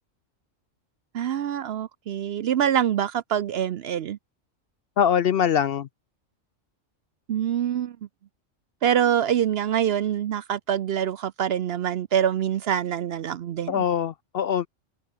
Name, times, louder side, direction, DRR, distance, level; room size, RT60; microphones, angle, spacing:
voice 1, 1.1-4.2 7.3-8.0 8.8-13.8, right 9 dB, 60° right, 0.7 m, -25 dB
voice 2, 5.0-5.9 13.7-14.7, left 8 dB, 60° left, 0.7 m, -23 dB
omnidirectional pair, 1.3 m